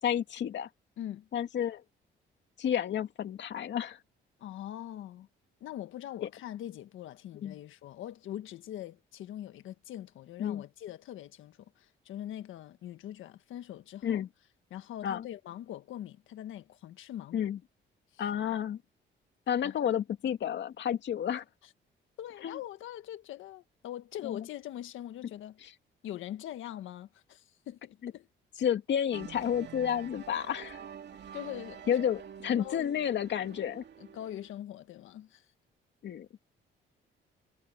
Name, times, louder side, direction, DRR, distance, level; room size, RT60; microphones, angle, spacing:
voice 1, 0.0-0.7 1.3-1.8 2.6-4.0 6.2-6.3 7.4-7.6 10.4-10.6 14.0-14.3 15.0-15.2 17.3-17.6 18.2-18.8 19.5-21.4 22.4-22.6 24.2-24.4 28.0-28.1 28.6-30.8 31.9-33.8 36.0-36.3, left 9 dB, 65° left, 2.4 m, -31 dB
voice 2, 1.0-1.3 4.4-5.3 5.6-14.2 14.7-17.4 18.1-18.2 19.6-19.8 21.6-21.7 22.2-25.6 26.0-28.3 31.3-32.0 32.6-33.0 34.0-35.4, left 12 dB, 80° left, 1.6 m, -42 dB
sound 1, 29.1-34.5, right 8 dB, 60° right, 2.4 m, -47 dB
cardioid pair, 90°, 20 cm